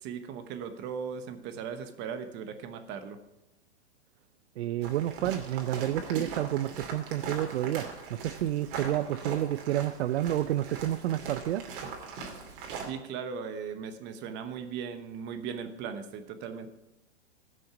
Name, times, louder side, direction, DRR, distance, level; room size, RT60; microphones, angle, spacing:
voice 1, 0.0-3.2 12.9-16.7, right 7 dB, 30° right, 9 dB, 1.1 m, -38 dB
voice 2, 4.6-11.6, right 13 dB, 65° right, 15 dB, 0.6 m, -30 dB
sound 1, 4.8-12.9, right 5 dB, 50° right, 2.7 m, -40 dB
16.0 x 6.4 x 5.9 m, 0.95 s
hypercardioid pair, 130°, 35 cm